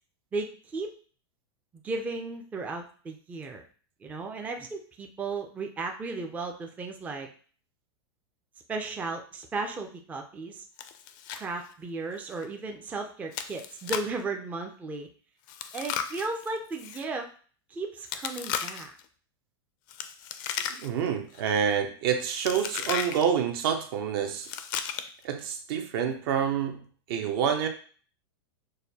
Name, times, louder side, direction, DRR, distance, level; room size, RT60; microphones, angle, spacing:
voice 1, 0.3-0.9 1.8-3.6 4.0-7.3 8.7-10.6 11.3-15.1 15.7-17.3 17.7-19.0, right 3 dB, 10° right, 3 dB, 0.4 m, -35 dB
Chewing mastication, 10.8-11.4 11.7-11.8 12.3-12.5 13.3-14.2 15.5-17.0 18.1-19.0 19.9-21.1 21.3-21.7 22.4-23.2 24.4-25.2, left 9 dB, 50° left, 0.4 m, -35 dB
voice 2, 20.6-24.5 25.2-27.7, right 8 dB, 60° right, 4 dB, 0.8 m, -28 dB
6.4 x 2.1 x 2.8 m, 0.42 s
supercardioid pair, 145°, 14 cm